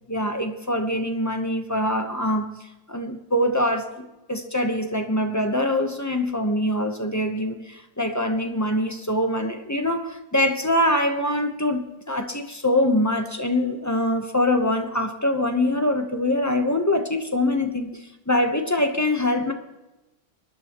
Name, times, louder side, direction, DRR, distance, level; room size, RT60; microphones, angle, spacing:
voice 1, 0.1-2.6 2.9-19.5, left 1 dB, 15° left, 5 dB, 0.9 m, -24 dB
23.5 x 10.5 x 3.0 m, 1.0 s
omnidirectional pair, 1.4 m